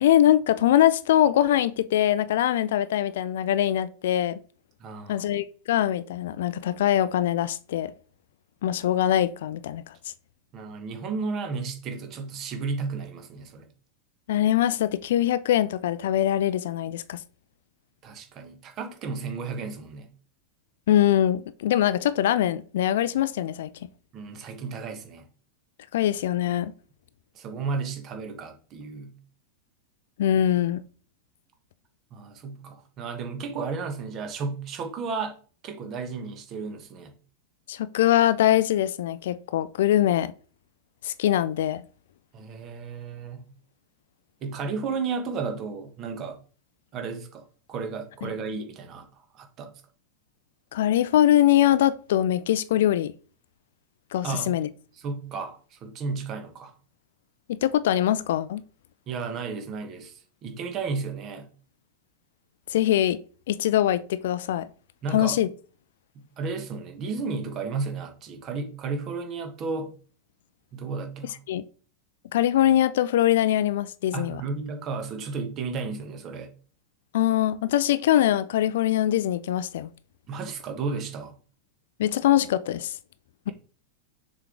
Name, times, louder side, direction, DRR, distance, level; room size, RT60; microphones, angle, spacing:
voice 1, 0.0-4.4 5.1-7.9 8.6-9.8 14.3-17.2 20.9-23.7 25.9-26.7 30.2-30.8 37.7-40.3 41.0-41.8 50.7-53.1 54.1-54.7 57.5-58.6 62.7-63.2 63.5-64.7 65.1-65.5 71.5-71.6 72.3-74.4 77.1-79.9 82.0-83.0, left 12 dB, 60° left, 0.4 m, -22 dB
voice 2, 4.8-5.3 10.5-13.7 18.0-20.1 24.1-25.3 27.3-29.2 32.1-35.4 35.6-37.1 42.3-43.5 44.4-46.4 46.9-49.1 49.3-49.7 54.2-54.5 55.0-56.7 59.1-61.5 65.0-65.4 66.1-69.9 70.7-71.4 74.1-76.5 80.3-81.4, right 4 dB, 35° right, 1.5 m, -33 dB
6.6 x 4.5 x 3.6 m
figure-of-eight pair, 90°, 0 cm